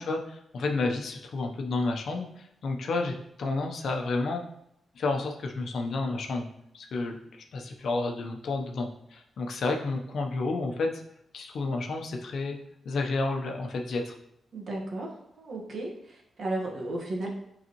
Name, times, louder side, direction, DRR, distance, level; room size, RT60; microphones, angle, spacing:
voice 1, 0.0-4.4 5.0-6.5 6.7-11.0 11.3-12.6 12.8-14.1, left 3 dB, 65° left, 2 dB, 0.9 m, -31 dB
voice 2, 14.5-17.3, right 2 dB, 50° right, -1 dB, 1.6 m, -34 dB
10.5 x 4.0 x 3.1 m, 0.76 s
wide cardioid pair, 120°, 0 cm